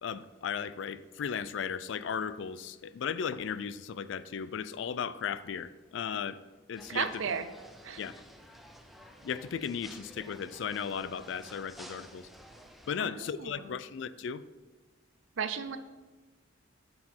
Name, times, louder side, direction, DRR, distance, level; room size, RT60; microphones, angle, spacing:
voice 1, 0.0-6.4 6.7-7.2 8.0-8.2 9.2-12.3 12.9-14.4, left 7 dB, 65° left, 0.3 m, -36 dB
sound 1, 6.7-13.0, equal, ahead, 0.5 m, -52 dB
voice 2, 6.9-7.5 7.8-8.0 13.0-13.7 15.4-15.8, right 6 dB, 75° right, 0.6 m, -34 dB
8.0 x 6.5 x 4.3 m
head